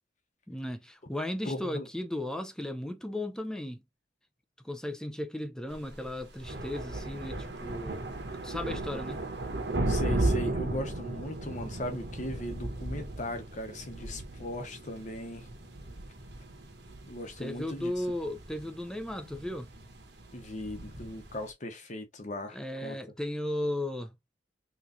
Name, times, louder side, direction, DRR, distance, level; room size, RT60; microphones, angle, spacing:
voice 1, 0.5-3.8 4.6-8.0 8.4-9.2 17.4-19.7 22.5-24.1, left 1 dB, 5° left, 0.5 m, -35 dB
voice 2, 1.4-1.9 8.9-9.0 9.9-15.5 17.1-18.1 20.3-23.0, left 1 dB, 40° left, 0.9 m, -38 dB
sound 1, 5.7-21.5, right 2 dB, 80° right, 1.1 m, -36 dB
3.6 x 3.1 x 2.6 m
head